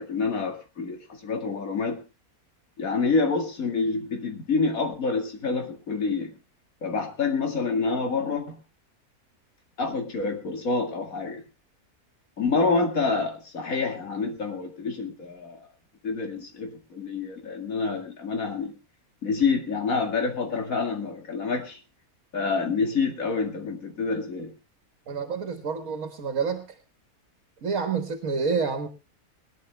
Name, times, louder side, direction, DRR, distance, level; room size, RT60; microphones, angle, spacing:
voice 1, 0.0-2.0 2.8-6.3 6.8-8.6 9.8-11.4 12.4-15.6 16.0-18.7 19.2-21.8 22.3-24.5, left 4 dB, 65° left, 3 dB, 2.6 m, -27 dB
voice 2, 25.1-26.7 27.6-28.9, right 5 dB, 65° right, 7 dB, 1.7 m, -28 dB
21.5 x 10.5 x 3.3 m, 0.30 s
omnidirectional pair, 1.5 m